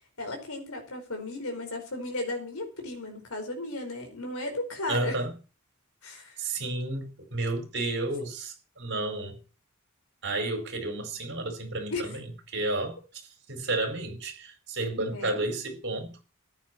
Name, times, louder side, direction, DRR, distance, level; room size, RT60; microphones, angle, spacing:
voice 1, 0.2-5.2 6.0-6.4 11.9-12.1 14.9-15.5, left 2 dB, 75° left, 4.7 m, -35 dB
voice 2, 4.9-5.3 6.4-9.4 10.2-13.0 13.5-16.1, right 2 dB, 55° right, 4.7 m, -31 dB
14.5 x 10.5 x 4.4 m
head